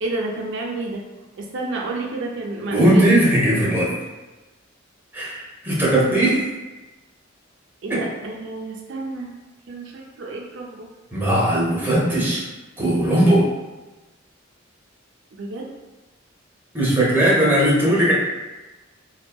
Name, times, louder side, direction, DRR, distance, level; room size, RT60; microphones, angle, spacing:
voice 1, 0.0-1.0 1.4-3.1 7.8-9.3 9.7-10.9 15.3-15.7, right 2 dB, 65° right, -1 dB, 0.5 m, -30 dB
voice 2, 2.7-4.0 5.1-6.4 7.9-8.0 11.1-12.4 12.8-13.5 16.7-18.1, right 1 dB, 10° right, -6 dB, 0.6 m, -18 dB
2.6 x 2.2 x 2.3 m, 1.1 s
head